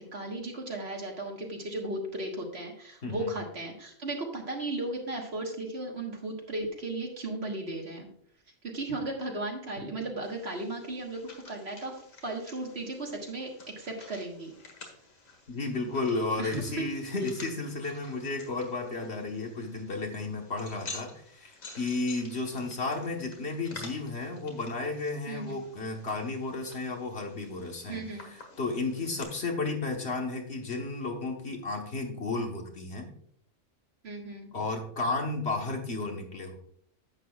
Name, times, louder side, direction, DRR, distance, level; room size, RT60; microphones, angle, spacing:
voice 1, 0.1-8.1 8.7-14.5 16.4-16.6 25.3-25.6 27.9-28.2 34.0-34.5, right 2 dB, 50° right, 1 dB, 1.8 m, -36 dB
voice 2, 3.0-3.3 15.5-33.1 34.5-36.5, left 3 dB, 50° left, 2 dB, 1.5 m, -33 dB
sound 1, 10.2-29.2, left 3 dB, 75° left, 2.1 m, -50 dB
10.5 x 8.2 x 2.4 m, 0.66 s
omnidirectional pair, 1.4 m